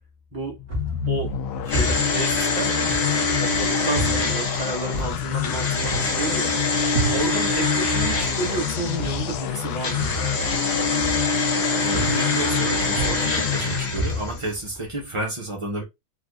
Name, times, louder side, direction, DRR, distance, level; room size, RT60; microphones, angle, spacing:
sound 1, 0.6-14.4, left 8 dB, 80° left, 1.4 m, -29 dB
sound 2, 0.7-3.5 4.0-7.7 8.0-11.6 11.9-12.5 12.9-15.2, right 1 dB, 35° right, 1.4 m, -31 dB
voice 1, 1.6-2.7 3.4-6.5 7.1-10.2, right 2 dB, 15° right, 1.0 m, -30 dB
sound 3, 1.7-9.3 9.8-14.5 14.8-14.9, left 3 dB, 50° left, 0.8 m, -25 dB
voice 2, 11.8-15.8, right 1 dB, 50° right, 0.3 m, -31 dB
4.6 x 2.3 x 2.2 m
omnidirectional pair, 2.2 m